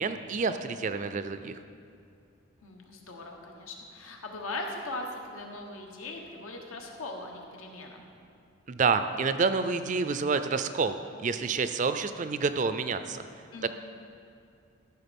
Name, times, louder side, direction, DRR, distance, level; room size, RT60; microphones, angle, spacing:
voice 1, 0.0-1.6 8.7-13.3 13.6-13.7, right 4 dB, 35° right, 10 dB, 0.4 m, -28 dB
voice 2, 2.6-8.0 13.5-13.7, left 2 dB, 90° left, 1 dB, 1.4 m, -40 dB
13.5 x 6.5 x 5.3 m, 2.4 s
head